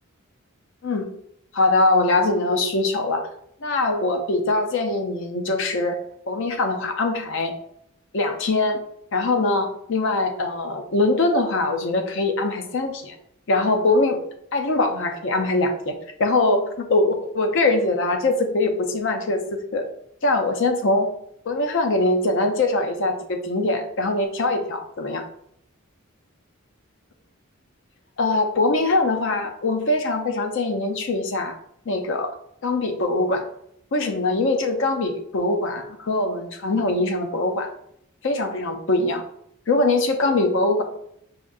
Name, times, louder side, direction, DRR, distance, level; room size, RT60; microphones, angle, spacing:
voice 1, 1.5-3.2 3.6-6.0 6.3-7.5 8.1-8.8 9.1-13.2 13.5-14.2 14.5-15.9 16.2-19.8 20.2-21.1 21.5-25.2 28.2-31.6 31.9-32.3 32.6-33.4 33.9-37.7 38.2-39.2 39.7-40.8, left 2 dB, 60° left, 6 dB, 0.5 m, -22 dB
4.9 x 2.6 x 2.4 m, 0.73 s
head